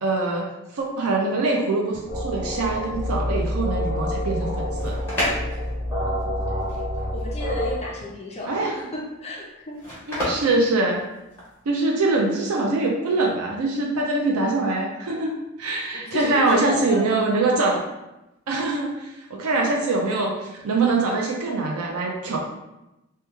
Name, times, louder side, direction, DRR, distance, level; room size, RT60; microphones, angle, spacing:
voice 1, 0.0-5.0 8.4-8.7 10.1-11.0 11.7-15.3 15.6-17.8 18.5-22.4, right 3 dB, 90° right, 0 dB, 0.4 m, -23 dB
sound 1, 2.1-7.8, left 1 dB, 10° right, 0.7 m, -27 dB
sound 2, 4.5-11.6, equal, 10° left, 1.1 m, -32 dB
voice 2, 5.9-6.8 7.1-9.8 15.9-17.2, left 1 dB, 30° left, -3 dB, 0.5 m, -33 dB
3.0 x 2.2 x 3.2 m, 0.95 s
head